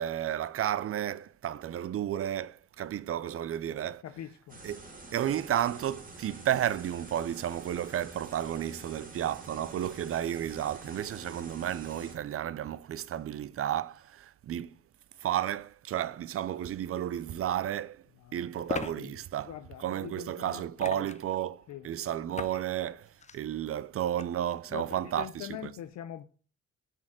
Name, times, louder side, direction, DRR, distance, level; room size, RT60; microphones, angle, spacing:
voice 1, 0.0-4.0 4.6-4.8 5.1-14.8 15.2-18.0 18.3-25.7, right 11 dB, 50° right, 0.5 m, -32 dB
voice 2, 4.0-4.6 18.3-18.4 19.0-19.2 19.5-21.0 21.7-21.9 24.7-26.3, left 11 dB, 65° left, 0.6 m, -43 dB
sound 1, 4.5-12.2, right 2 dB, 30° right, 2.0 m, -48 dB
sound 2, 17.2-17.3 18.7-18.9 20.8-21.3 22.3-22.6 23.1-23.4 24.2-24.3, left 6 dB, 25° left, 0.5 m, -37 dB
6.0 x 4.5 x 6.2 m
cardioid pair, 90°, 30 cm